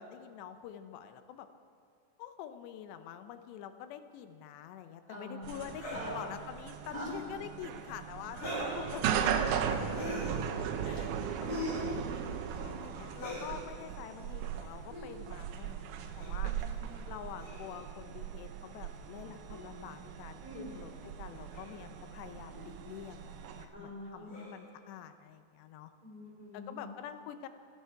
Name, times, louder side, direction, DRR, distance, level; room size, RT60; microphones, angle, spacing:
voice 1, 0.0-1.5 2.2-9.3 10.8-11.1 11.4-16.5 17.1-25.9 26.5-27.5, left 10 dB, 90° left, 9 dB, 3.0 m, -46 dB
voice 2, 5.1-6.3 6.9-7.0 16.4-17.1 20.4-20.7 23.7-24.4 26.0-26.9, equal, 10° left, -4 dB, 2.5 m, -46 dB
sound 1, 5.4-23.7, right 8 dB, 90° right, 1.7 m, -38 dB
sound 2, 5.7-6.0 6.8-7.2 8.3-8.8 9.9-10.4 11.5-11.9 13.1-13.5 14.8-15.1 16.2-16.4 17.4-17.8 19.5-19.6 20.7-20.8 21.5-21.7 22.5-22.7 24.3-24.6, left 2 dB, 40° left, 6.0 m, -41 dB
27.0 x 10.5 x 4.7 m, 2.4 s
omnidirectional pair, 4.8 m